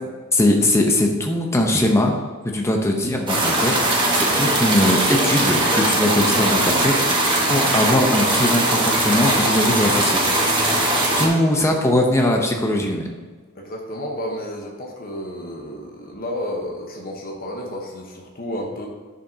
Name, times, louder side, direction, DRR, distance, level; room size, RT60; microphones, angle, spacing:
voice 1, 0.3-2.2 2.4-3.7 4.1-7.2 7.5-10.3 11.2-13.1, left 1 dB, 15° left, 1 dB, 0.8 m, -20 dB
sound 1, 3.3-11.3, right 1 dB, 25° right, 1.5 m, -20 dB
voice 2, 13.5-18.9, left 1 dB, 45° left, 0 dB, 1.1 m, -31 dB
10.5 x 6.9 x 2.8 m, 1.4 s
head